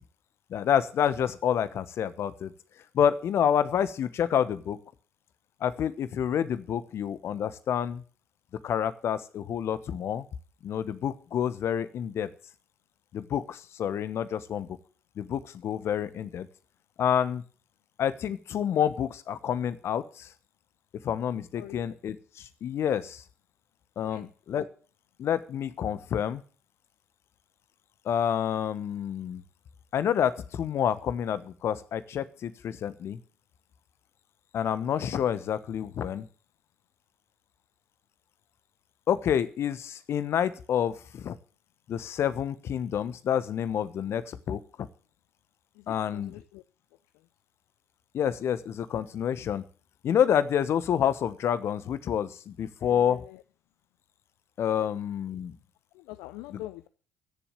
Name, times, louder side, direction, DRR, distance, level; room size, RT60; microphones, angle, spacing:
voice 1, 0.5-2.5 2.9-4.8 5.6-8.0 8.6-10.2 10.6-12.3 13.1-14.7 15.2-16.5 17.0-17.4 18.0-20.3 21.0-23.2 24.0-24.7 25.2-26.4 28.0-29.4 29.9-33.2 34.5-36.3 39.1-41.4 41.9-44.9 45.9-46.3 48.1-49.6 50.0-53.2 54.6-55.5 56.5-56.6, left 9 dB, 55° left, 1.2 m, -28 dB
voice 2, 45.8-46.6 52.8-53.4 55.9-56.9, left 16 dB, 70° left, 0.6 m, -44 dB
15.0 x 7.2 x 8.3 m
hypercardioid pair, 50°, 5 cm